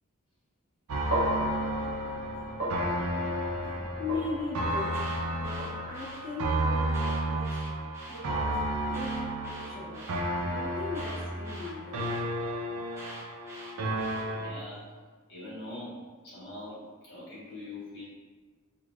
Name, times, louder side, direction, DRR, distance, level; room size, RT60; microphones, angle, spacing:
sound 1, 0.9-14.5, right 1 dB, 80° right, 0.5 m, -32 dB
sound 2, 1.1-9.4, left 1 dB, 45° right, 0.9 m, -37 dB
voice 1, 4.0-7.6 8.1-10.1 10.5-12.1, left 3 dB, 25° left, -13 dB, 0.7 m, -39 dB
Alarm, 4.7-6.2 6.9-8.2 8.9-10.2 10.9-12.2 12.9-14.2, right 1 dB, 10° right, 0.6 m, -46 dB
voice 2, 14.3-14.8 15.3-16.0 16.2-18.1, left 2 dB, 50° left, -9 dB, 1.5 m, -43 dB
4.7 x 2.5 x 2.4 m, 1.4 s
head